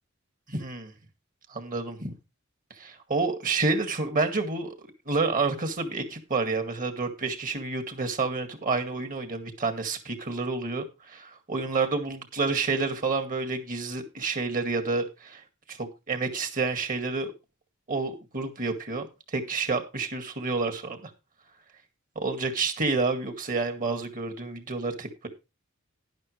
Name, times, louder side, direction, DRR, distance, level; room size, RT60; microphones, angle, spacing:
voice 1, 0.5-0.9 1.5-2.2 2.8-15.4 15.7-17.3 17.9-21.1 22.2-25.3, right 3 dB, 40° right, 2.2 m, -29 dB
12.0 x 11.0 x 3.3 m
head